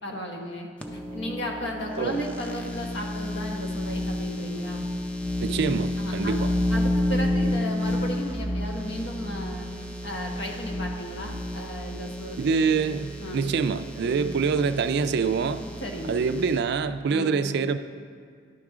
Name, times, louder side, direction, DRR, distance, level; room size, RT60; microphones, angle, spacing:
voice 1, 0.0-4.9 6.0-6.4 6.7-9.7 10.0-12.4 13.2-13.5 14.0-14.3 15.8-16.2 17.1-17.4, equal, 65° left, 1 dB, 1.1 m, -35 dB
sound 1, 0.8-16.6, left 1 dB, 5° left, 0.4 m, -30 dB
voice 2, 5.4-6.5 12.4-15.6 16.1-17.8, right 5 dB, 60° right, 11 dB, 0.3 m, -25 dB
11.0 x 4.9 x 3.6 m, 2.1 s
head